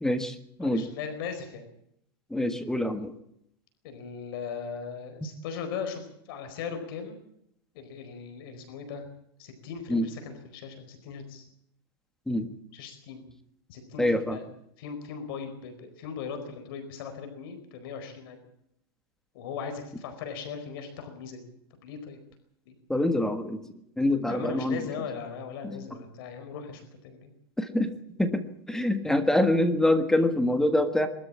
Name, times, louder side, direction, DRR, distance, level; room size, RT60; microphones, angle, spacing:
voice 1, 0.0-0.8 2.3-3.1 9.9-10.1 12.3-12.5 14.0-14.4 22.9-23.6 24.0-24.8 27.6-27.9 28.2-31.1, left 1 dB, 5° left, 8 dB, 1.6 m, -25 dB
voice 2, 0.6-1.6 3.8-7.2 7.7-9.1 9.4-11.4 12.7-13.2 13.7-14.4 14.8-18.5 19.3-21.5 21.8-22.2 22.7-22.8 24.3-27.3, left 6 dB, 60° left, 6 dB, 4.5 m, -38 dB
23.0 x 13.0 x 8.7 m, 0.75 s
supercardioid pair, 145°, 13 cm